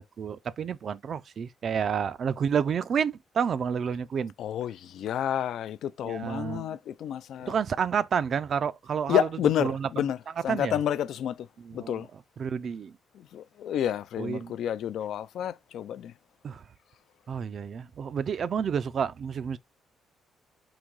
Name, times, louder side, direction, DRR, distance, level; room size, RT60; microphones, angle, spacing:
voice 1, 0.0-4.3 6.0-6.7 7.5-9.3 9.6-9.9 10.5-10.7 11.6-12.0 12.4-12.9 14.2-14.5 16.4-16.6 17.3-19.6, right 7 dB, 55° right, 0.3 m, -29 dB
voice 2, 4.4-7.6 9.1-10.2 10.4-11.5 11.7-12.1 13.1-16.1, left 10 dB, 75° left, 0.3 m, -30 dB
3.9 x 2.6 x 4.5 m
cardioid pair, 90°, 0 cm